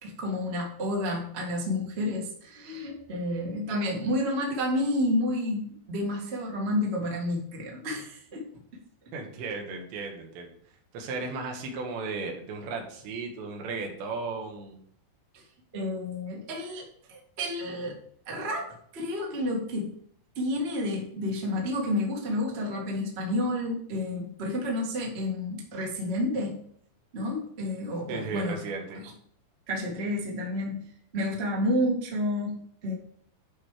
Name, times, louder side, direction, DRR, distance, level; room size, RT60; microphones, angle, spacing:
voice 1, 0.0-8.5 15.3-15.4 15.7-18.0 18.2-19.9 20.3-26.6 27.1-28.6 29.7-30.9 31.1-32.9, left 1 dB, 40° right, -2 dB, 0.8 m, -30 dB
voice 2, 9.1-10.5 10.9-14.8 28.1-29.0, right 4 dB, 85° right, 2 dB, 3.7 m, -35 dB
11.0 x 4.7 x 4.9 m, 0.64 s
omnidirectional pair, 5.0 m